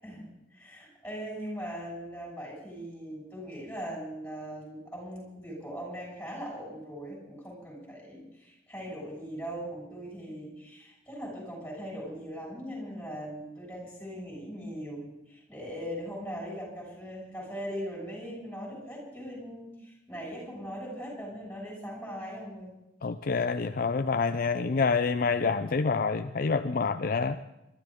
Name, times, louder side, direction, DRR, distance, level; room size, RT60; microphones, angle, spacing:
voice 1, 0.0-22.7, equal, 5° left, -3 dB, 6.9 m, -40 dB
voice 2, 23.0-27.4, left 4 dB, 50° left, 9 dB, 0.5 m, -27 dB
24.0 x 13.0 x 3.7 m, 0.90 s
head